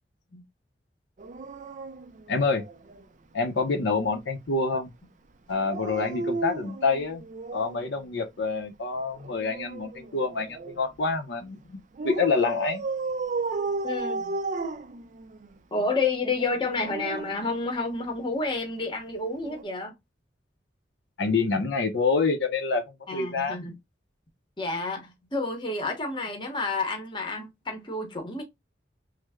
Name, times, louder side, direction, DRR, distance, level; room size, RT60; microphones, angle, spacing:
Dog, 1.2-3.1 5.5-7.9 9.2-10.8 12.0-15.5 16.5-18.2 19.4-19.6, right 3 dB, 45° right, 0.4 m, -34 dB
voice 1, 2.3-2.6 3.3-4.9 5.5-7.2 7.5-12.8 21.2-22.8 23.1-23.7, left 4 dB, 75° left, 0.6 m, -27 dB
voice 2, 13.8-14.4 15.7-19.9 23.1-23.7 24.6-28.4, left 3 dB, 25° left, 0.8 m, -30 dB
3.2 x 2.0 x 3.4 m
head